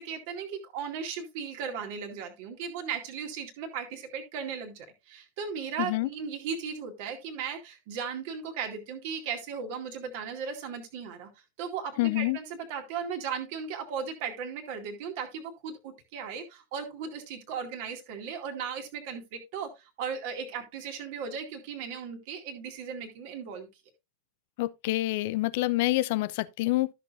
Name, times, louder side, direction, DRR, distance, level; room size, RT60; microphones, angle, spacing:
voice 1, 0.0-11.3 11.6-23.7, right 6 dB, 50° right, 2.2 m, -36 dB
voice 2, 5.8-6.1 12.0-12.4 24.6-26.9, left 19 dB, 50° left, 0.5 m, -27 dB
13.0 x 6.7 x 2.5 m
figure-of-eight pair, 90°, 0 cm